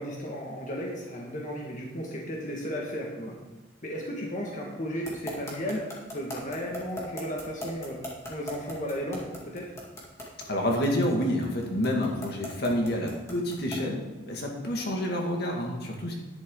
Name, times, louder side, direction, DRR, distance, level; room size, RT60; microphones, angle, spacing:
voice 1, 0.0-3.4 3.8-8.0 8.3-9.7, equal, 45° left, -2 dB, 1.7 m, -34 dB
sound 1, 5.0-13.9, left 1 dB, 15° left, 2.4 m, -39 dB
voice 2, 10.5-16.1, left 1 dB, 60° left, 0 dB, 1.9 m, -28 dB
11.0 x 10.0 x 3.8 m, 1.1 s
head